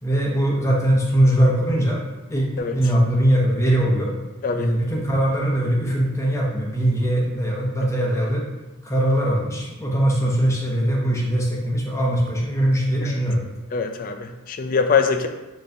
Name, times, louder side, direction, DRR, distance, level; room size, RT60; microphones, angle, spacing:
voice 1, 0.0-2.0 2.3-2.5 2.7-4.1 4.5-8.4 8.8-13.4, right 1 dB, 15° left, -3 dB, 0.7 m, -21 dB
voice 2, 4.4-4.8 13.0-13.2 13.7-15.3, left 5 dB, 40° left, 7 dB, 0.3 m, -23 dB
6.6 x 3.1 x 2.6 m, 1.1 s
head